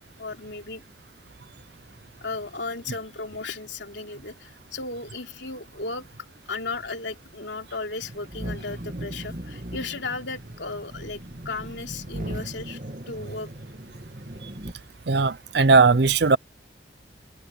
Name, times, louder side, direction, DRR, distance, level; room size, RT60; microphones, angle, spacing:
voice 1, 0.2-0.8 2.2-6.1 6.5-11.2 11.4-12.8 13.1-13.5, left 3 dB, 85° left, 3.2 m, -35 dB
sound 1, 8.0-14.7, right 1 dB, 45° right, 2.4 m, -38 dB
voice 2, 15.1-16.4, right 4 dB, 70° right, 0.6 m, -18 dB
head